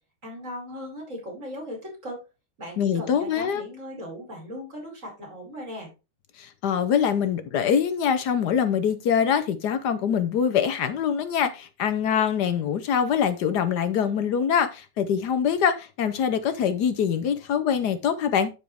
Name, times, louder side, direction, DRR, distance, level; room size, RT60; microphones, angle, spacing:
voice 1, 0.2-2.2 2.6-5.9, equal, 35° right, 6.0 m, -38 dB
voice 2, 2.8-3.6 6.4-18.5, left 8 dB, 65° left, 1.1 m, -24 dB
12.5 x 4.7 x 3.4 m
omnidirectional pair, 2.3 m